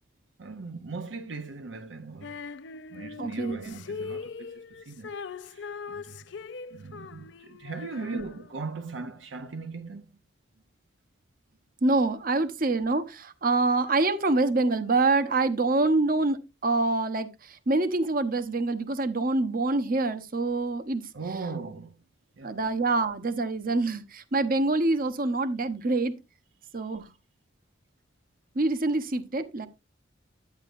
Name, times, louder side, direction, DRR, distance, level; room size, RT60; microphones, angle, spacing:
voice 1, 0.4-2.4 2.9-5.1 5.4-6.2 6.7-10.1 21.1-22.0 22.4-22.6 26.8-26.9, right 4 dB, 80° right, 0.7 m, -39 dB
Female singing, 2.2-8.7, left 5 dB, 65° left, 0.5 m, -41 dB
voice 2, 3.2-3.7 8.1-8.2 11.8-21.1 22.4-26.2 26.7-27.1 28.5-29.7, right 2 dB, 50° right, 1.0 m, -26 dB
10.5 x 9.1 x 2.6 m
head